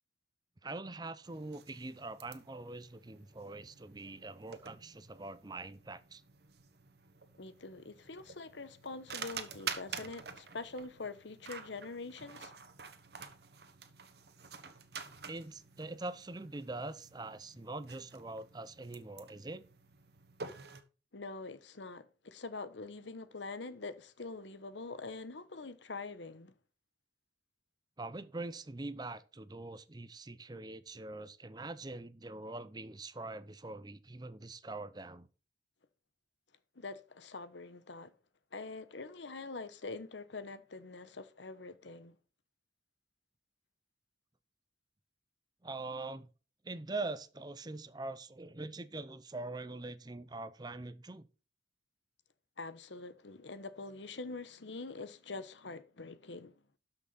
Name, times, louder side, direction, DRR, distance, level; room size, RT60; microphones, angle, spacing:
voice 1, 0.6-6.2 15.3-19.6 28.0-35.3 45.6-46.3 46.6-51.3, right 2 dB, 20° right, 0.6 m, -43 dB
sound 1, 1.2-20.8, right 6 dB, 60° right, 1.3 m, -49 dB
voice 2, 7.4-12.5 21.1-26.5 36.8-38.1 38.5-42.2 52.6-56.6, left 3 dB, 80° left, 1.0 m, -44 dB
12.5 x 5.8 x 4.1 m
head